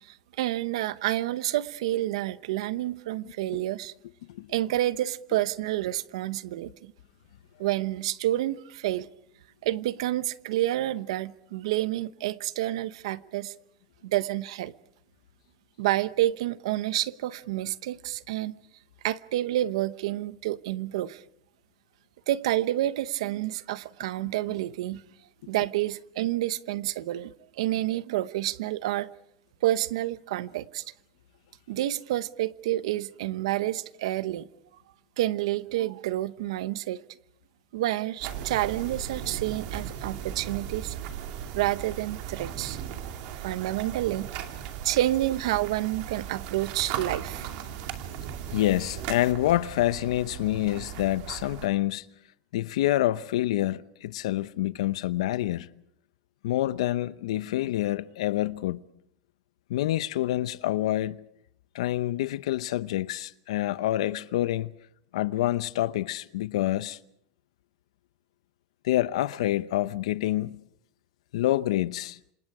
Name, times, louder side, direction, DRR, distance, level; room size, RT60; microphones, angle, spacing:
voice 1, 0.1-3.9 4.5-6.9 7.6-9.1 9.6-13.5 14.0-14.7 15.8-18.6 19.0-21.2 22.3-25.0 25.5-29.1 29.6-30.8 31.7-34.5 35.2-37.0 37.7-40.9 41.5-42.8 43.4-44.3 44.8-47.5, right 15 dB, 70° right, 0.9 m, -29 dB
sound 1, 38.2-51.7, right 9 dB, 45° right, 2.6 m, -37 dB
voice 2, 48.5-52.1 52.5-55.7 56.4-58.8 59.7-61.2 61.7-64.7 65.1-67.0 68.8-70.6 71.3-72.2, left 14 dB, 85° left, 0.8 m, -27 dB
27.5 x 26.5 x 4.9 m
supercardioid pair, 180°, 3 cm